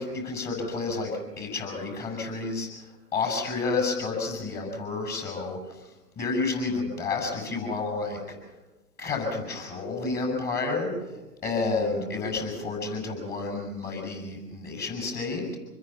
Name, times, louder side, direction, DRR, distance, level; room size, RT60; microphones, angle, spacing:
voice 1, 0.0-2.7 3.1-5.8 6.2-8.4 9.0-10.9 11.4-15.6, left 3 dB, 20° left, 3 dB, 7.5 m, -30 dB
26.5 x 21.5 x 5.9 m, 1.1 s
hypercardioid pair, 135°, 47 cm